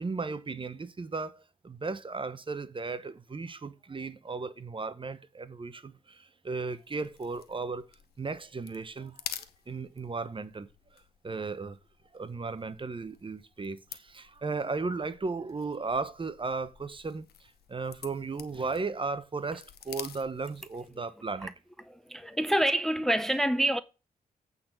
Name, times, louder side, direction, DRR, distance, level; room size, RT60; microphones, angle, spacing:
voice 1, 0.0-7.8 8.2-10.7 11.2-11.8 12.1-21.5, right 4 dB, 30° right, 0.9 m, -36 dB
sound 1, 6.7-21.0, left 10 dB, 80° left, 0.9 m, -49 dB
voice 2, 21.9-23.8, right 1 dB, ahead, 0.6 m, -27 dB
8.6 x 4.1 x 6.7 m
supercardioid pair, 55°, 16 cm